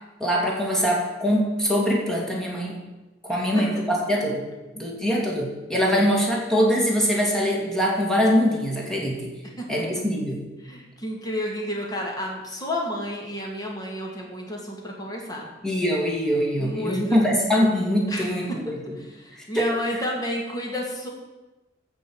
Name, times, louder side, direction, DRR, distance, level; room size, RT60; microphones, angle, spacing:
voice 1, 0.2-2.8 3.2-4.5 4.7-9.3 9.7-10.5 15.6-18.8 19.5-19.7, equal, 5° left, -2 dB, 2.6 m, -23 dB
voice 2, 10.6-15.5 16.6-17.2 18.1-18.6 19.0-21.1, left 1 dB, 20° left, -1 dB, 2.4 m, -31 dB
14.0 x 5.4 x 7.9 m, 1.1 s
head